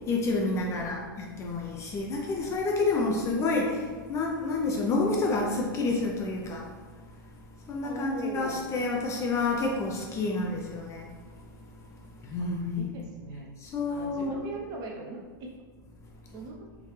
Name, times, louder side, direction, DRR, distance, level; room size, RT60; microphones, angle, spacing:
voice 1, 0.0-6.7 7.7-11.1 12.2-12.9 13.6-14.4, left 3 dB, 25° left, 0 dB, 0.5 m, -29 dB
voice 2, 0.7-1.2 3.2-3.5 7.8-8.7 12.4-13.5 13.9-15.5 16.3-16.6, right 3 dB, 35° right, 0 dB, 0.8 m, -40 dB
3.5 x 2.6 x 3.2 m, 1.4 s
hypercardioid pair, 115°, 12 cm